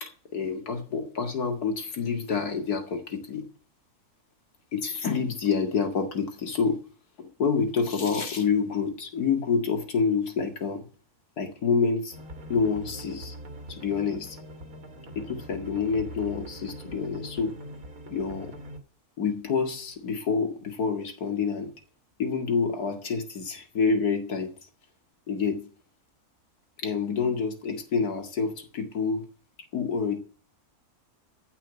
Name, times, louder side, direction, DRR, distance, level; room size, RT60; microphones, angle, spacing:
voice 1, 0.0-3.5 4.7-6.8 7.2-10.9 11.4-12.1 12.5-13.3 13.7-14.4 15.2-17.6 18.1-18.5 19.2-21.7 22.2-24.5 25.3-25.7 26.8-29.2 29.7-30.2, left 5 dB, 85° left, 2.6 m, -27 dB
sound 1, 12.1-18.8, equal, 65° right, 2.4 m, -42 dB
14.5 x 5.9 x 8.2 m
omnidirectional pair, 1.6 m